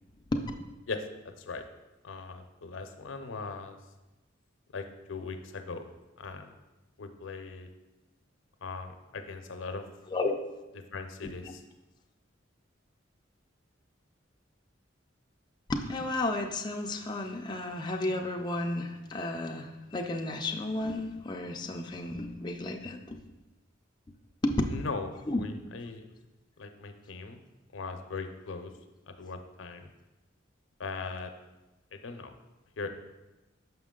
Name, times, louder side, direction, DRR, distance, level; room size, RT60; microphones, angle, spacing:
voice 1, 2.0-3.8 4.7-5.8 6.2-6.6 7.0-7.7 8.6-9.9 10.9-11.6 24.7-25.1 25.4-26.1 26.6-27.4 27.7-28.7 29.1-29.9 30.8-31.3 31.9-32.3 32.8-32.9, left 4 dB, 80° left, 7 dB, 0.6 m, -39 dB
voice 2, 15.7-23.2 24.4-24.6 25.3-25.4, left 2 dB, 25° left, 2 dB, 0.4 m, -32 dB
5.9 x 5.2 x 3.7 m, 1.0 s
head